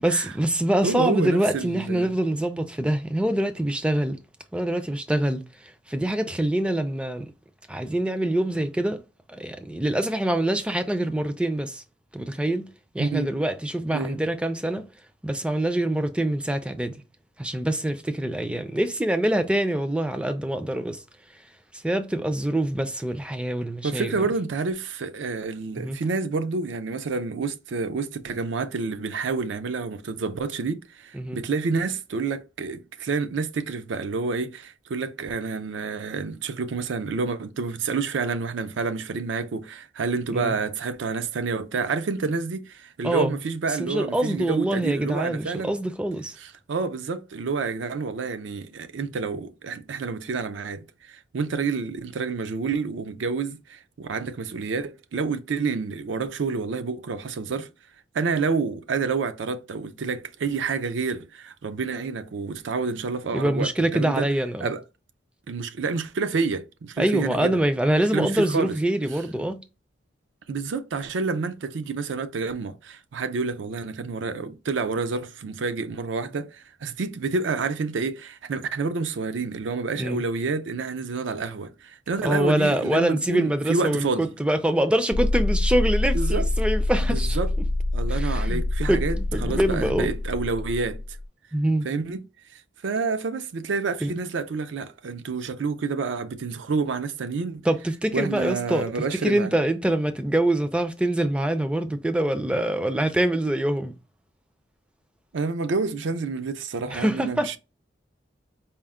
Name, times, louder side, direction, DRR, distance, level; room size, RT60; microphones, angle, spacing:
voice 1, 0.0-4.2 4.5-5.4 5.9-7.3 7.7-9.0 9.3-11.8 12.1-12.7 12.9-14.8 15.2-17.0 17.4-21.0 21.8-24.1 25.8-26.0 31.1-31.4 40.3-40.5 43.0-43.3 43.8-46.4 63.3-64.7 67.0-69.6 80.0-80.2 82.2-87.4 88.1-88.6 88.9-90.1 91.5-91.9 94.0-94.1 97.7-98.9 99.1-103.9 106.9-107.5, right 1 dB, 5° right, 0.3 m, -25 dB
voice 2, 0.8-2.1 13.0-13.3 13.9-14.2 23.8-45.7 46.4-57.7 58.1-64.3 64.6-64.8 65.5-67.6 68.1-68.8 70.5-84.3 86.1-86.5 87.0-87.5 87.9-91.0 91.8-92.2 92.5-97.6 98.1-99.5 105.3-107.6, right 4 dB, 75° right, 0.4 m, -29 dB
sound 1, 85.1-91.2, left 2 dB, 85° left, 0.5 m, -25 dB
4.3 x 2.1 x 3.5 m
head